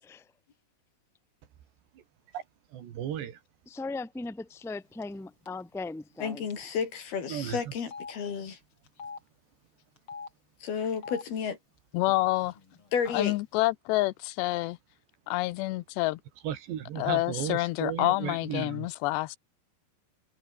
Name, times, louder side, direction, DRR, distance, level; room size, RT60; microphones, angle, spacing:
voice 1, 2.7-3.4 7.3-7.6 16.4-18.9, right 10 dB, 80° right, 4.5 m, -34 dB
voice 2, 3.6-6.4, left 3 dB, ahead, 1.5 m, -38 dB
Telephone, 5.0-5.2 5.5-5.6 6.5-6.6 6.9-7.0 7.8-8.1 8.9-9.2 10.0-10.3 10.9-11.2 12.0-12.1 12.4-13.1, left 5 dB, 30° left, 3.9 m, -42 dB
voice 3, 6.2-8.6 10.6-11.6 12.9-13.4, left 7 dB, 65° left, 5.6 m, -32 dB
voice 4, 11.9-12.5 13.1-14.8 15.3-16.2 17.0-19.4, left 19 dB, 85° left, 2.9 m, -28 dB
omnidirectional pair, 4.9 m